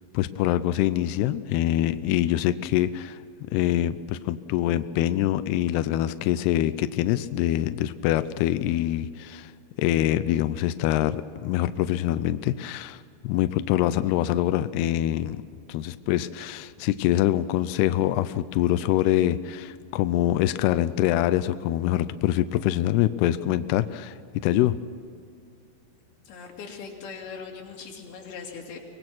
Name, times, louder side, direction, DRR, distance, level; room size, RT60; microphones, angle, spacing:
voice 1, 0.1-3.2 3.5-9.5 9.8-15.4 15.7-24.2 24.4-24.8, left 13 dB, 85° left, 12 dB, 2.3 m, -24 dB
voice 2, 26.3-28.8, left 5 dB, 60° left, -1 dB, 4.6 m, -40 dB
24.5 x 20.0 x 6.1 m, 2.4 s
omnidirectional pair, 5.4 m